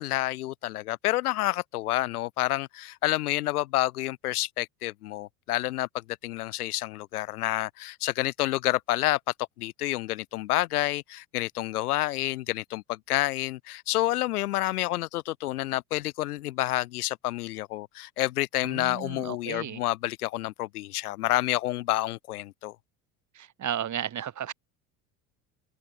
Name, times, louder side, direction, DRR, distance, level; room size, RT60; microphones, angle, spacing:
voice 1, 0.0-9.2 9.6-22.7, left 16 dB, 75° left, 2.0 m, -29 dB
voice 2, 18.6-19.8 23.3-24.5, right 10 dB, 40° right, 4.6 m, -34 dB
hypercardioid pair, 75°, 45 cm